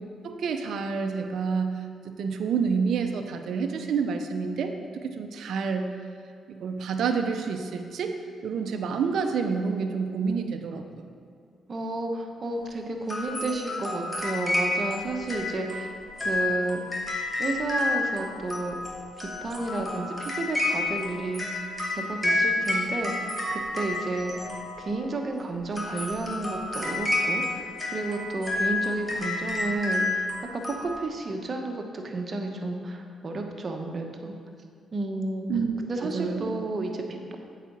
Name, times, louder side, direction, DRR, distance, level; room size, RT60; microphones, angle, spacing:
voice 1, 0.2-1.7 2.0-4.9 5.2-5.9 6.5-8.1 8.4-11.0 35.5-36.6, right 5 dB, 70° right, 5 dB, 0.6 m, -28 dB
voice 2, 11.7-15.9 16.2-17.0 17.4-18.8 19.2-21.6 21.9-30.2 30.5-34.4 34.9-35.5 35.8-37.4, right 2 dB, 45° right, 3 dB, 1.1 m, -32 dB
sound 1, 13.1-25.0 25.6-30.9, left 2 dB, 15° left, 2.3 m, -30 dB
8.1 x 5.0 x 6.0 m, 2.3 s
supercardioid pair, 55°, 0 cm